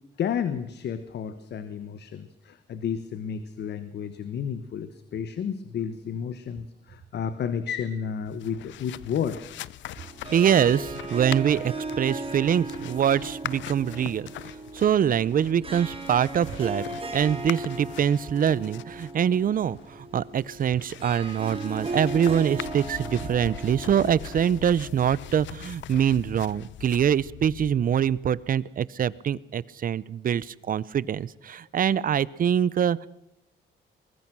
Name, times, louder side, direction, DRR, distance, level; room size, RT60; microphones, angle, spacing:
voice 1, 0.2-9.5, left 7 dB, 65° left, 12 dB, 1.3 m, -31 dB
sound 1, 8.2-28.2, left 13 dB, 80° left, 0.7 m, -42 dB
Harp, 10.0-25.2, right 3 dB, 30° right, 2.9 m, -37 dB
voice 2, 10.3-14.3 14.7-16.8 17.1-33.1, right 9 dB, 45° right, 21 dB, 0.7 m, -24 dB
23.5 x 20.5 x 6.2 m, 0.88 s
cardioid pair, 130°, 19 cm